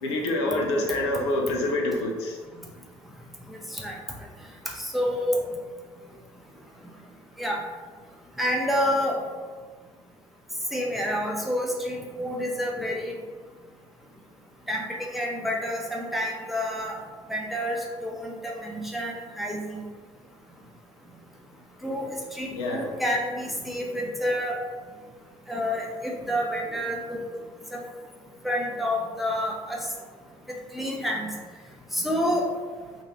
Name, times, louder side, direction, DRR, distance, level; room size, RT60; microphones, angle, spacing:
voice 1, 0.0-2.4 22.5-22.9, left 1 dB, 70° left, 0 dB, 0.5 m, -26 dB
voice 2, 4.9-5.4 7.4-7.6 8.4-9.2 10.7-13.1 14.7-17.0 17.3-17.8 18.0-19.8 21.8-24.5 25.5-27.2 27.7-27.8 28.4-29.8 30.7-31.3 31.9-32.5, equal, ahead, -2 dB, 0.7 m, -28 dB
3.0 x 2.5 x 3.8 m, 1.5 s
figure-of-eight pair, 50°, 15 cm